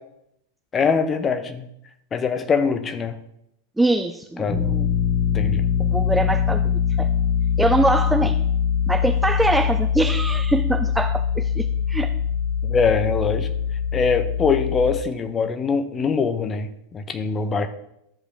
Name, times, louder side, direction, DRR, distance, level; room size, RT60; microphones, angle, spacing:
voice 1, 0.7-1.7 2.1-3.2 4.4-4.6 5.3-5.7 8.2-8.3 12.6-13.5 13.9-17.7, left 5 dB, 20° left, 10 dB, 0.7 m, -23 dB
voice 2, 3.8-4.9 5.8-6.6 7.0-7.1 7.6-8.4 8.9-12.1, right 2 dB, 5° right, 7 dB, 0.3 m, -23 dB
sound 1, 4.5-14.9, left 7 dB, 50° left, 2.3 m, -23 dB
13.0 x 4.9 x 3.3 m, 0.78 s
figure-of-eight pair, 90°, 0 cm